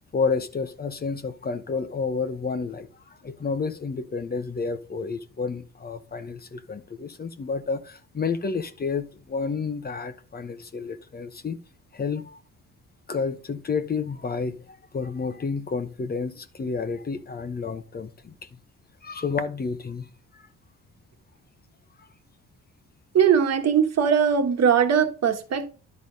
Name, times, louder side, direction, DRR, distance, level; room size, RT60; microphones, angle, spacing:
voice 1, 0.1-11.6 11.9-12.4 13.1-18.3 19.0-20.1 20.3-20.5, left 5 dB, 30° left, 0.9 m, -30 dB
voice 2, 23.1-25.7, right 7 dB, 60° right, 1.4 m, -20 dB
11.0 x 4.1 x 5.2 m
cardioid pair, 90°, 30 cm